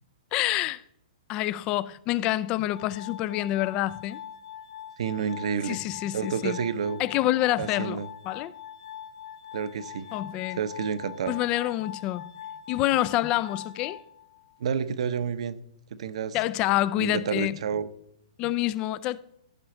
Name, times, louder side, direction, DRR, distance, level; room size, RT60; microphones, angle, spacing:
voice 1, 0.3-0.8 1.3-4.2 5.6-6.6 7.0-8.5 10.1-10.6 11.3-12.3 12.7-14.0 16.3-17.6 18.4-19.2, left 15 dB, 20° left, 0.3 m, -27 dB
Glass, 2.7-14.7, left 9 dB, 70° left, 1.1 m, -43 dB
voice 2, 5.0-5.8 6.1-7.0 7.6-8.1 9.5-10.1 10.5-11.3 14.6-15.6 15.9-16.4 17.0-17.9, right 7 dB, 60° right, 0.8 m, -29 dB
15.0 x 6.2 x 4.4 m
hypercardioid pair, 170°, 4 cm